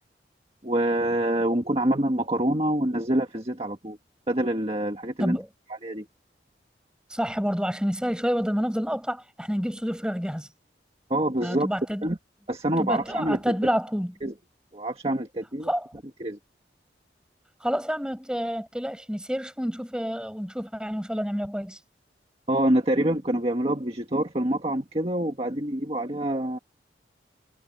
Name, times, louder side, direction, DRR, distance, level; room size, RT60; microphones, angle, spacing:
voice 1, 0.6-4.0 4.3-5.4 5.8-6.1 11.1-11.7 12.0-12.2 12.5-13.5 14.2-14.3 14.7-15.7 16.2-16.4 22.5-26.6, right 1 dB, 35° right, 1.7 m, -26 dB
voice 2, 7.1-10.5 11.4-12.0 12.8-14.1 15.6-15.9 17.6-21.8, equal, 5° right, 7.7 m, -28 dB
head